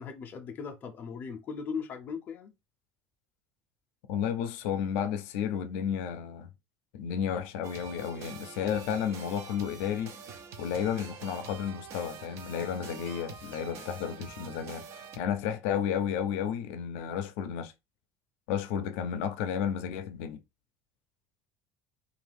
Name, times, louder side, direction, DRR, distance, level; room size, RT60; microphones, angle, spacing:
voice 1, 0.0-2.5, left 6 dB, 25° left, 0.5 m, -38 dB
voice 2, 4.1-6.5 6.9-10.1 10.6-17.7 18.5-20.4, left 8 dB, 85° left, 0.4 m, -32 dB
sound 1, 7.6-15.2, right 6 dB, 45° right, 0.5 m, -45 dB
2.6 x 2.3 x 3.3 m
cardioid pair, 170°, 7 cm